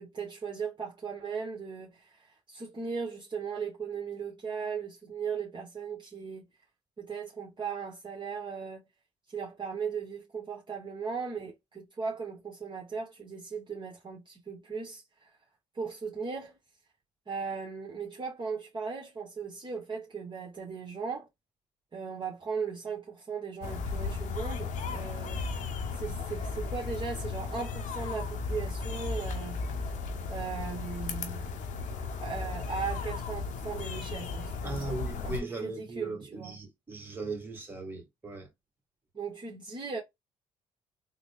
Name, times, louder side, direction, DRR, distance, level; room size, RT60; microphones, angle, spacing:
voice 1, 0.0-6.5 7.0-8.8 9.3-15.4 15.7-16.6 17.3-21.3 21.9-25.4 25.9-30.0 30.3-31.4 32.2-34.9 35.2-36.5 39.1-40.0, right 5 dB, 35° right, 1.2 m, -37 dB
sound 1, 23.6-35.4, left 4 dB, 75° left, 0.8 m, -35 dB
voice 2, 34.6-38.5, right 3 dB, 15° right, 2.0 m, -38 dB
3.7 x 2.1 x 3.6 m
cardioid pair, 75°, 13 cm